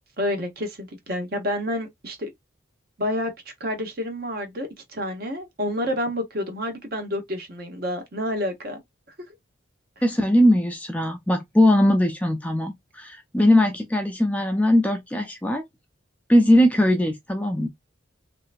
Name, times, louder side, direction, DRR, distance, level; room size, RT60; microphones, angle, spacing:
voice 1, 0.2-2.3 3.0-3.3 3.6-8.8, left 1 dB, 50° right, 1.0 m, -29 dB
voice 2, 10.0-15.6 16.3-17.7, left 1 dB, 5° left, 0.4 m, -20 dB
3.2 x 2.8 x 2.5 m
head